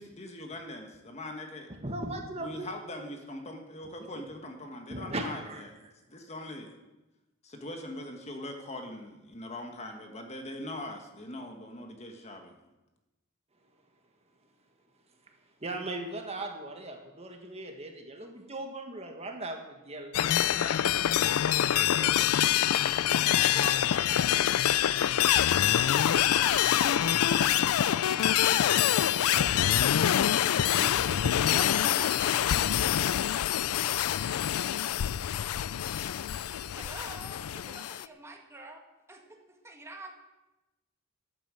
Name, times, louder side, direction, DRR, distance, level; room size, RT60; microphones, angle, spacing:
voice 1, 0.0-1.7 2.4-5.8 6.1-6.7 7.4-12.5, left 1 dB, 30° left, 4 dB, 1.5 m, -41 dB
voice 2, 1.8-2.7 4.2-4.3 4.9-5.6 15.6-21.0 21.7-22.5 27.5-27.7 28.7-28.8 30.4-30.9 31.2-31.4 32.2-32.3, right 2 dB, 30° right, 3 dB, 1.6 m, -39 dB
sound 1, 20.1-38.0, left 11 dB, 85° left, 0.4 m, -25 dB
voice 3, 23.5-29.7 31.5-32.5 36.7-40.1, right 2 dB, 10° right, 2 dB, 1.7 m, -46 dB
12.5 x 9.0 x 7.6 m, 1.0 s
head